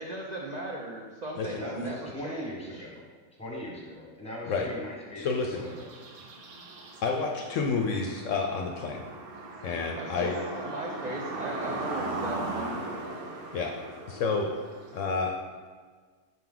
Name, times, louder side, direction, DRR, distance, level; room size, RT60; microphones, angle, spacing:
voice 1, 0.0-2.9 10.0-13.0, right 1 dB, 50° right, -2 dB, 0.5 m, -37 dB
voice 2, 1.5-3.0 3.4-5.8, left 1 dB, 5° left, -4 dB, 1.1 m, -40 dB
voice 3, 5.2-5.6 7.0-9.1 9.6-10.4 13.5-13.7 14.1-14.5 14.9-15.4, left 4 dB, 70° left, 2 dB, 0.8 m, -29 dB
sound 1, 5.3-15.0, right 2 dB, 80° right, 1.3 m, -38 dB
5.5 x 4.5 x 3.8 m, 1.5 s
omnidirectional pair, 1.5 m